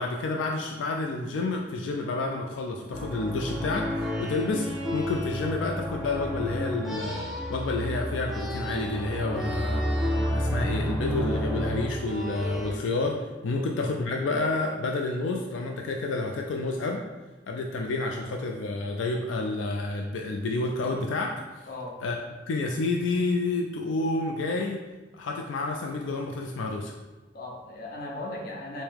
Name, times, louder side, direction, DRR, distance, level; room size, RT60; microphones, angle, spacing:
voice 1, 0.0-7.2 7.5-9.8 10.3-17.0 17.5-21.7 22.0-22.2 22.5-24.8 25.1-26.9, left 3 dB, 90° left, 1 dB, 0.3 m, -29 dB
sound 1, 2.9-12.7, equal, ahead, 0.5 m, -30 dB
voice 2, 21.7-22.0 27.3-28.8, left 2 dB, 55° left, -2 dB, 0.7 m, -37 dB
4.6 x 2.1 x 3.4 m, 1.2 s
head